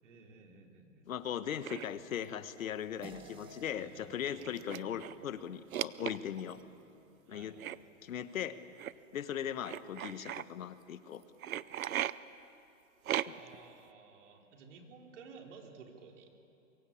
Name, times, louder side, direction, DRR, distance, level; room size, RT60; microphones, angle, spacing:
voice 1, 0.0-1.1 3.7-5.0 7.3-7.6 13.1-16.3, right 4 dB, 60° right, 2 dB, 3.9 m, -55 dB
voice 2, 1.1-6.6 7.3-7.6 8.0-8.6 9.1-11.2 13.3-13.4, left 9 dB, 75° left, 12 dB, 1.4 m, -39 dB
sound 1, 1.6-1.9 3.0-3.2 3.5-3.6 4.4-5.2 5.7-6.5 7.6-7.8 8.8-8.9 9.6-10.4 11.4-12.1 13.0-13.6, right 11 dB, 85° right, 0.8 m, -37 dB
sound 2, 3.0-7.8, right 4 dB, 10° right, 1.3 m, -57 dB
23.5 x 23.0 x 8.6 m, 2.8 s
hypercardioid pair, 155°, 41 cm